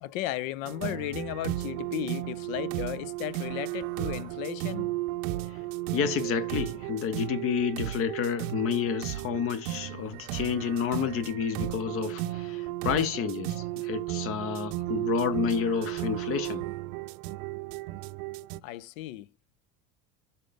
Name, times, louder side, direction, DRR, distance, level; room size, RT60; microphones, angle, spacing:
voice 1, 0.0-4.9 18.6-19.3, left 15 dB, 90° left, 0.6 m, -35 dB
sound 1, 0.6-18.6, right 16 dB, 85° right, 0.5 m, -34 dB
voice 2, 5.9-16.7, left 7 dB, 35° left, 0.6 m, -30 dB
5.5 x 3.9 x 5.0 m
cardioid pair, 150°, 39 cm